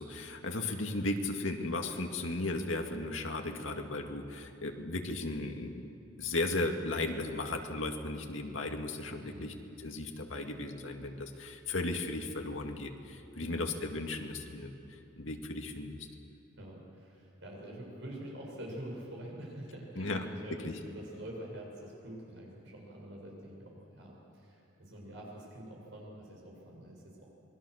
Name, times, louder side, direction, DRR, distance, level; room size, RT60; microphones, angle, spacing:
voice 1, 0.0-5.9 6.2-9.5 9.8-16.0 20.0-20.3 20.6-20.7, left 2 dB, 80° left, 3 dB, 2.1 m, -36 dB
voice 2, 9.2-9.6 13.4-13.7 16.6-27.3, right 1 dB, 65° right, -2 dB, 7.0 m, -46 dB
27.0 x 21.0 x 6.6 m, 2.7 s
head